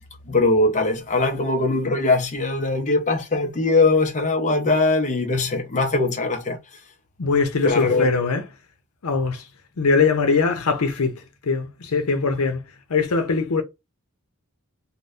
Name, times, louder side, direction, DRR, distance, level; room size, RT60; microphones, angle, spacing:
voice 1, 0.3-6.6 7.6-8.1, left 3 dB, 35° left, 0.6 m, -21 dB
voice 2, 7.2-8.4 9.0-9.4 9.8-12.6 12.9-13.6, left 4 dB, 80° left, 0.7 m, -21 dB
2.7 x 2.1 x 3.3 m
head